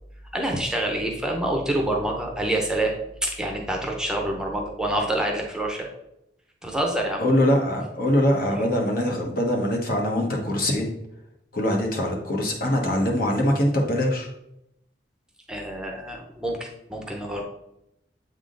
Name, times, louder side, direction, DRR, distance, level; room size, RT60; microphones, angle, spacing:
voice 1, 0.3-2.9 3.2-5.9 6.6-7.2 15.5-17.4, right 1 dB, 5° right, 1 dB, 0.7 m, -27 dB
voice 2, 7.2-10.9 11.5-14.3, left 1 dB, 55° left, 1 dB, 1.2 m, -23 dB
7.8 x 3.7 x 3.8 m, 0.82 s
head